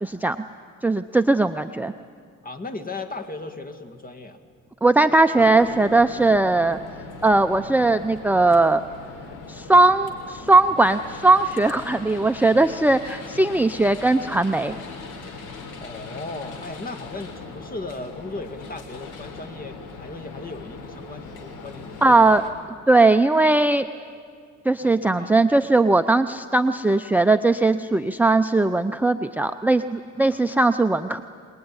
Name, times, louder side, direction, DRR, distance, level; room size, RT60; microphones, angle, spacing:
voice 1, 0.0-0.4 0.8-1.9 4.8-6.8 7.2-8.8 9.5-14.8 22.0-22.5 22.9-23.9 24.6-31.2, right 2 dB, 5° right, 7 dB, 0.6 m, -19 dB
voice 2, 2.4-4.4 15.8-22.2 24.8-25.5 30.1-30.4, left 2 dB, 30° left, 7 dB, 2.2 m, -37 dB
sound 1, 5.3-22.5, left 4 dB, 80° left, 3.6 m, -39 dB
23.0 x 20.5 x 9.8 m, 2.1 s
cardioid pair, 90°, 30 cm